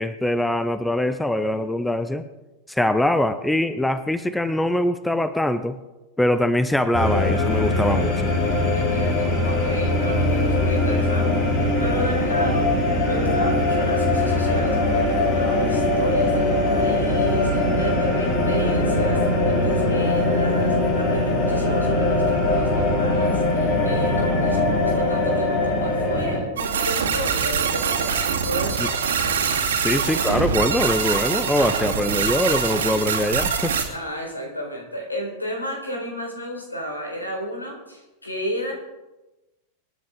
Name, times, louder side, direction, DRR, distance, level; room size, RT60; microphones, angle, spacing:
voice 1, 0.0-2.2 2.7-5.8 6.2-8.4 28.8-28.9 29.8-33.7, left 1 dB, 5° left, 13 dB, 0.7 m, -23 dB
sound 1, 6.9-26.4, left 2 dB, 45° left, 4.7 m, -21 dB
voice 2, 8.7-12.7 13.0-29.0 33.9-38.7, equal, 80° left, 1 dB, 4.4 m, -32 dB
sound 2, 26.6-33.8, right 6 dB, 65° right, 2.4 m, -24 dB
25.5 x 10.0 x 3.8 m, 1.1 s
figure-of-eight pair, 90°, 0 cm